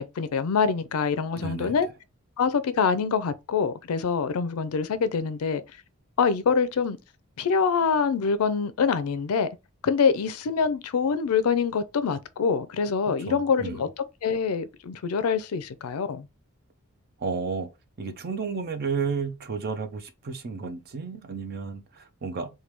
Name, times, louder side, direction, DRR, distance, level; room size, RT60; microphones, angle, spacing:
voice 1, 0.0-1.9 2.4-5.6 6.2-7.0 7.4-9.5 9.8-13.9 14.2-16.3, left 5 dB, 80° left, 0.4 m, -25 dB
voice 2, 1.3-1.7 13.3-13.8 17.2-17.7 18.0-22.5, right 5 dB, 45° right, 0.5 m, -32 dB
3.3 x 2.2 x 3.0 m
head